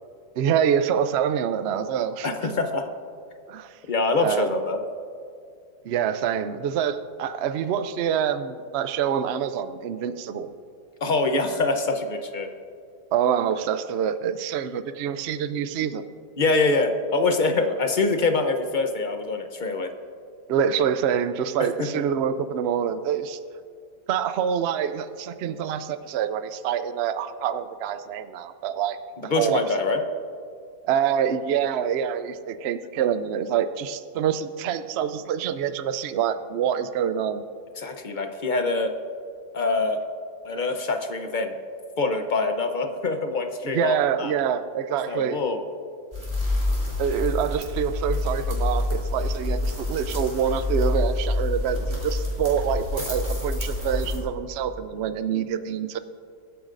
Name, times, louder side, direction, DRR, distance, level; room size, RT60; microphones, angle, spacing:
voice 1, 0.4-2.3 3.5-3.8 4.2-4.5 5.8-10.5 13.1-16.1 20.5-23.4 24.1-29.6 30.8-37.4 43.6-45.4 47.0-56.0, right 8 dB, 75° right, 11 dB, 0.6 m, -26 dB
voice 2, 2.2-2.9 3.9-4.8 11.0-12.5 16.4-19.9 21.8-21.9 29.3-30.0 37.8-38.9 39.5-40.0 40.4-41.6 42.0-44.3 45.1-45.6, left 3 dB, 45° left, 6 dB, 0.6 m, -24 dB
sound 1, 46.1-54.2, left 2 dB, 20° right, 3.2 m, -27 dB
22.0 x 9.2 x 2.6 m, 2.3 s
omnidirectional pair, 1.7 m